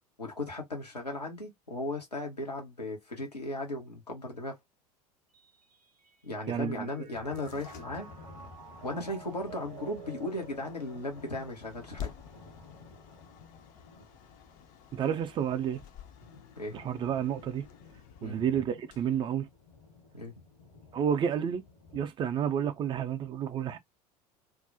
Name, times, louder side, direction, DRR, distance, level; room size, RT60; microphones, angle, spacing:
voice 1, 0.2-4.6 6.2-8.1 8.8-12.1 16.6-16.8 18.2-18.7 20.1-20.4, left 2 dB, 90° left, 0.8 m, -37 dB
Mallet percussion, 5.3-11.8, right 8 dB, 80° right, 0.5 m, -51 dB
voice 2, 6.5-7.1 14.9-15.8 16.7-17.6 18.2-19.5 20.9-21.6 21.9-23.8, right 8 dB, 25° right, 0.3 m, -30 dB
sound 1, 7.1-22.1, left 4 dB, 65° left, 1.0 m, -54 dB
sound 2, 7.1-20.0, left 9 dB, 40° left, 0.5 m, -50 dB
2.4 x 2.0 x 2.5 m
figure-of-eight pair, 75°, 20 cm